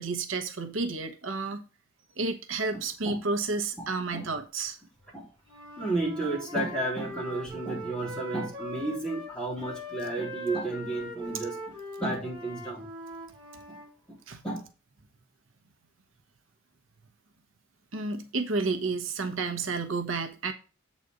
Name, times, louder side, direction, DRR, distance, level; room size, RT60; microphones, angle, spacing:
voice 1, 0.0-1.6 2.2-4.8 14.3-14.4 17.9-20.5, right 3 dB, 80° right, 1.0 m, -31 dB
voice 2, 3.8-4.3 5.1-5.3 5.8-12.9 14.4-14.6, right 2 dB, 5° left, 3.3 m, -32 dB
Wind instrument woodwind instrument, 5.4-9.3 9.6-13.9, left 1 dB, 25° right, 1.7 m, -41 dB
7.9 x 4.2 x 5.1 m
head